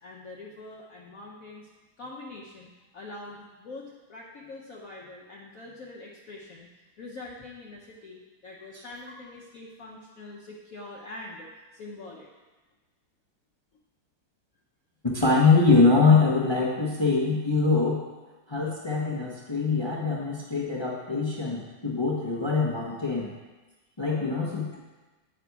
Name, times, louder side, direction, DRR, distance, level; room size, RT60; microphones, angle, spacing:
voice 1, 0.0-1.7 2.0-6.7 7.0-12.3 24.0-24.3, left 2 dB, 60° left, -4 dB, 1.0 m, -44 dB
voice 2, 15.1-18.0 18.5-23.3 24.0-24.8, left 4 dB, 30° left, -3 dB, 0.5 m, -23 dB
8.3 x 5.0 x 4.6 m, 1.2 s
omnidirectional pair, 2.0 m